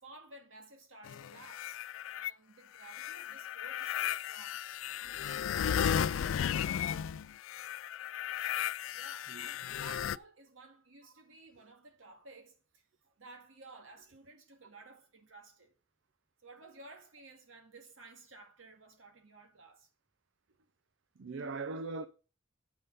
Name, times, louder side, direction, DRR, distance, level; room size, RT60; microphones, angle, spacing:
voice 1, 0.0-1.9 2.1-4.7 5.1-6.5 8.9-15.8 16.4-19.9, right 3 dB, 90° right, 2.0 m, -55 dB
sound 1, 1.0-2.3 2.8-10.2, left 9 dB, 85° left, 0.3 m, -35 dB
voice 2, 21.2-22.1, right 3 dB, 70° right, 0.5 m, -39 dB
7.9 x 5.7 x 5.3 m
head